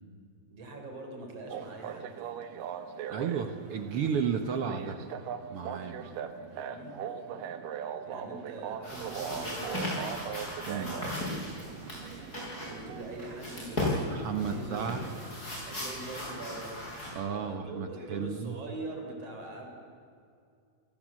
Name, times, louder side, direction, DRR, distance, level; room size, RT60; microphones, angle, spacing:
voice 1, 0.5-2.1 3.2-3.6 6.0-6.3 6.7-7.5 8.0-10.1 10.7-11.4 12.6-14.2 14.5-15.1 15.7-16.8 17.4-19.7, right 2 dB, 45° right, 2 dB, 4.9 m, -43 dB
sound 1, 1.5-15.8, right 8 dB, 80° right, 2.8 m, -41 dB
voice 2, 3.1-5.0 5.5-6.0 10.7-11.0 14.1-15.0 17.1-18.6, right 7 dB, 65° right, 6 dB, 1.5 m, -33 dB
sound 2, 8.8-17.1, left 1 dB, 25° left, 7.6 m, -37 dB
28.0 x 19.0 x 7.5 m, 2.4 s
omnidirectional pair, 3.9 m